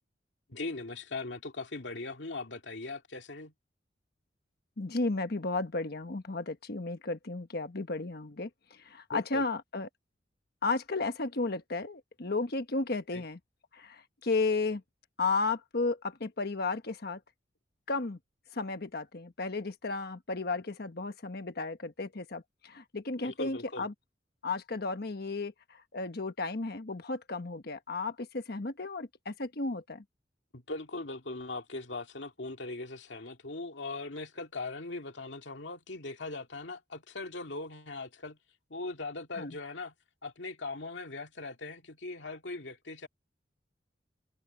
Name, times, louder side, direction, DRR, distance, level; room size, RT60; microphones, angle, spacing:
voice 1, 0.5-3.5 9.1-9.4 13.1-13.2 23.2-23.9 30.5-38.4 38.7-39.9 40.2-43.1, left 3 dB, 80° left, 2.2 m, -40 dB
voice 2, 4.8-9.9 10.6-13.4 13.7-14.8 15.2-17.2 17.9-18.2 18.5-23.9 24.4-30.0 39.4-39.6, left 3 dB, 60° left, 1.2 m, -33 dB
head